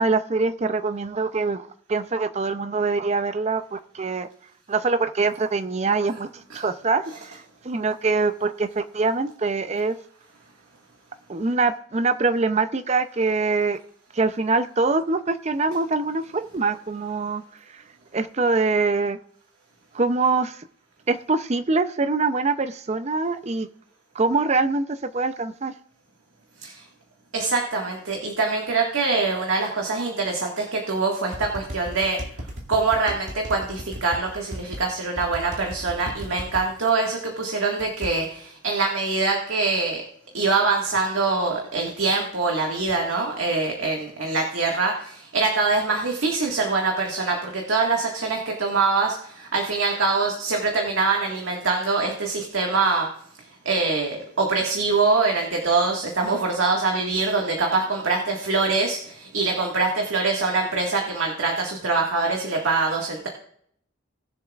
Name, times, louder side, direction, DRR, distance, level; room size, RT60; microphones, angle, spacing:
voice 1, 0.0-4.3 4.7-10.0 11.3-13.8 14.1-17.4 18.1-19.2 19.9-20.6 21.1-23.7 24.1-25.7, right 3 dB, 35° right, 11 dB, 0.5 m, -24 dB
voice 2, 27.3-32.2 32.7-40.0 40.3-53.1 53.6-63.3, right 3 dB, 85° right, 0 dB, 1.8 m, -24 dB
sound 1, 31.3-34.8 35.2-36.6 37.8-38.1, equal, 65° right, 2.3 m, -35 dB
20.0 x 7.0 x 2.4 m, 0.66 s
head